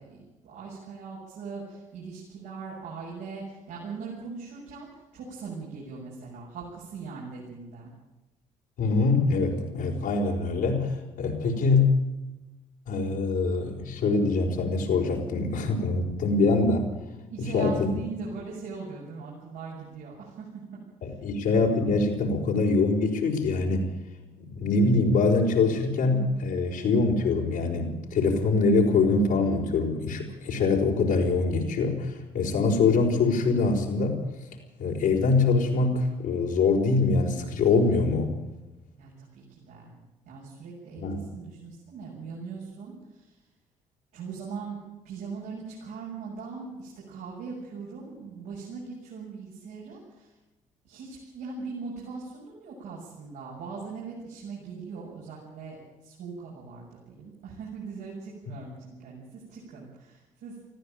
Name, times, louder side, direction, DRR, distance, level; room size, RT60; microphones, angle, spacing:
voice 1, 0.0-7.9 17.3-20.5 21.0-21.2 39.0-40.0 40.3-43.4 44.1-44.8 45.0-50.3 50.8-60.5, right 5 dB, 75° right, -5 dB, 7.3 m, -40 dB
voice 2, 8.8-11.9 12.9-16.8 17.4-17.9 21.0-23.9 24.5-34.2 34.8-38.4 41.0-41.2, left 3 dB, 70° left, -2 dB, 5.1 m, -24 dB
19.5 x 14.5 x 9.1 m, 1.0 s
hypercardioid pair, 55°, 16 cm